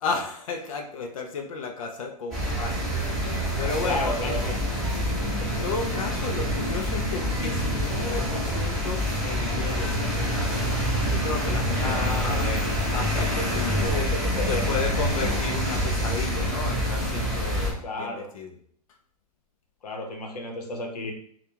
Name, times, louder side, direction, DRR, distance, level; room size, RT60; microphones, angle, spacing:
voice 1, 0.0-2.8 3.0-4.3 5.4-10.7 11.1-14.0 14.5-18.6, left 4 dB, 60° left, 4 dB, 0.7 m, -33 dB
sound 1, 2.3-17.7, equal, ahead, 1.4 m, -26 dB
voice 2, 3.8-4.6 5.0-5.1 11.8-12.5 13.9-14.8 17.8-18.3 19.8-21.1, left 2 dB, 85° left, 3 dB, 1.0 m, -32 dB
5.4 x 2.4 x 2.9 m, 0.63 s
hypercardioid pair, 150°, 20 cm